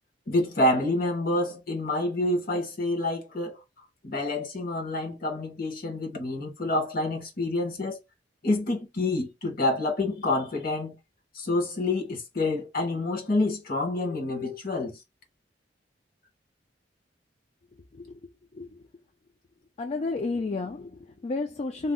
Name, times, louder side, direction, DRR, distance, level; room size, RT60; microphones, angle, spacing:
voice 1, 0.3-3.6 4.0-8.0 8.4-11.0 11.3-15.0, left 2 dB, 55° left, 1.1 m, -28 dB
voice 2, 19.8-21.9, left 3 dB, 35° left, 0.3 m, -31 dB
2.7 x 2.0 x 3.6 m
head